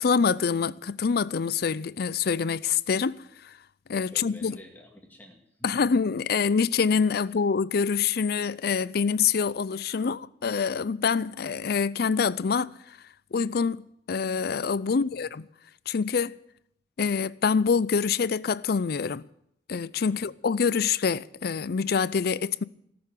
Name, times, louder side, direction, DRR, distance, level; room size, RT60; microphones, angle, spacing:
voice 1, 0.0-3.2 3.4-3.5 3.9-4.6 5.6-12.7 13.3-13.8 14.1-15.5 15.9-16.3 17.0-19.2 19.7-22.6, left 5 dB, 60° left, 0.5 m, -25 dB
voice 2, 4.0-5.8 14.8-15.2 20.1-20.3, left 1 dB, 10° left, 2.1 m, -49 dB
18.0 x 6.9 x 9.5 m
head